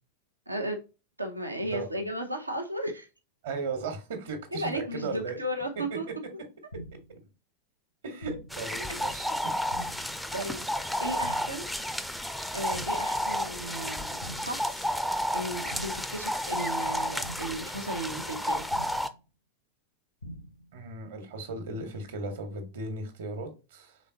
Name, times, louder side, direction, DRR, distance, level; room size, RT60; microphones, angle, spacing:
voice 1, 0.5-0.8 1.2-3.1 4.5-6.1 8.9-9.0 10.3-10.7 11.0-11.7 12.5-14.9 15.3-18.6, right 1 dB, 85° right, 0.7 m, -35 dB
voice 2, 3.4-5.4 8.0-9.9 20.7-24.0, right 3 dB, 60° right, 1.3 m, -36 dB
sound 1, 6.7-7.2 8.2-8.7 9.7-10.2 11.2-11.7 12.7-13.2 14.2-14.7 15.7-16.2 17.2-17.7 18.7-19.2 20.2-20.7, equal, 80° left, 0.7 m, -43 dB
sound 2, 8.5-19.1, equal, ahead, 0.4 m, -32 dB
5.1 x 3.6 x 2.7 m
figure-of-eight pair, 90°, 0 cm